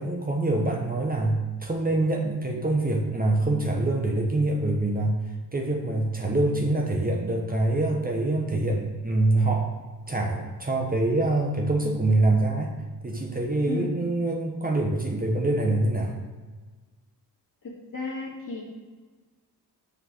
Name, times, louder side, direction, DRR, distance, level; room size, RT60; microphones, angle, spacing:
voice 1, 0.0-5.2 5.5-9.7 10.1-12.7 13.0-16.2, right 2 dB, 25° right, 1 dB, 0.9 m, -25 dB
voice 2, 13.6-14.0 17.6-18.6, left 3 dB, 60° left, -4 dB, 2.4 m, -34 dB
6.6 x 4.6 x 6.2 m, 1.4 s
wide cardioid pair, 130°, 37 cm